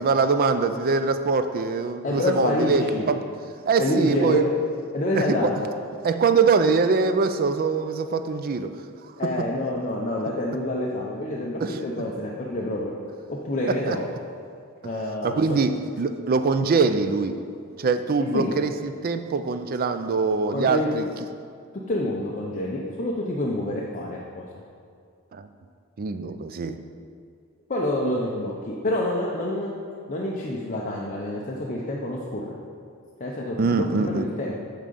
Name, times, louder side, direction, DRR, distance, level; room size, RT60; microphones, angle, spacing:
voice 1, 0.0-3.2 3.7-4.4 5.2-5.5 6.0-8.7 11.6-11.8 13.9-14.0 15.2-17.4 17.8-21.1 25.3-25.5 26.0-26.8 33.6-34.3, right 4 dB, 45° right, 10 dB, 0.4 m, -23 dB
voice 2, 2.0-3.1 3.8-4.5 4.9-5.7 9.2-12.9 13.3-14.0 14.8-15.4 18.3-18.5 20.5-20.9 21.9-24.4 27.7-29.7 30.1-32.6 33.2-34.6, left 1 dB, 35° left, -3 dB, 0.7 m, -27 dB
8.8 x 3.8 x 6.8 m, 2.2 s
head